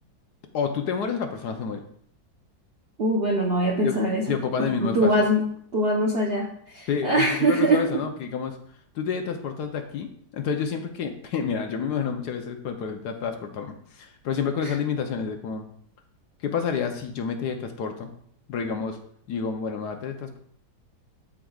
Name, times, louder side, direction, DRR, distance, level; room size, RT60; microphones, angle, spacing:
voice 1, 0.5-1.8 3.8-4.0 4.3-5.1 6.9-8.6 8.9-15.7 16.4-18.1 18.5-19.0 19.3-20.4, left 6 dB, 65° left, 5 dB, 1.1 m, -29 dB
voice 2, 3.0-5.4 5.7-8.0 14.6-14.7, right 1 dB, 55° right, -2 dB, 0.7 m, -23 dB
12.5 x 4.8 x 2.4 m, 0.65 s
omnidirectional pair, 2.1 m